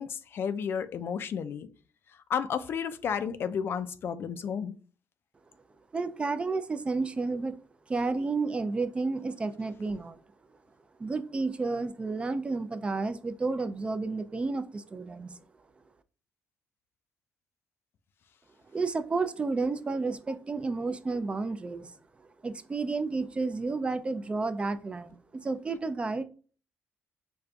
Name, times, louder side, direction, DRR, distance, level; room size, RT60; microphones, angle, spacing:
voice 1, 0.0-1.7 2.3-4.7, left 7 dB, 55° left, 0.3 m, -32 dB
voice 2, 5.9-7.6 7.9-10.2 11.0-15.4 18.7-21.9 22.4-26.2, right 3 dB, 25° right, 0.3 m, -31 dB
5.0 x 2.5 x 2.3 m
cardioid pair, 105°, 5 cm